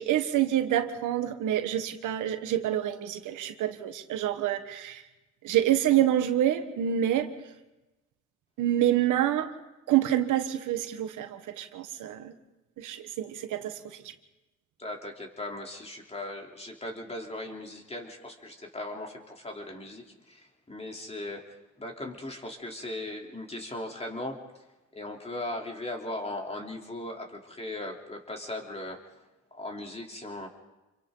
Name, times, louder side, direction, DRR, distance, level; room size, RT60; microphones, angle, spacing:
voice 1, 0.0-5.0 5.4-7.3 8.6-9.5 9.9-12.3 12.8-13.8, right 11 dB, 85° right, 8 dB, 1.5 m, -27 dB
voice 2, 14.8-24.4 24.9-29.0 29.5-30.5, left 1 dB, 20° left, 1 dB, 3.4 m, -38 dB
28.0 x 23.5 x 3.9 m, 1.0 s
cardioid pair, 90°, 30 cm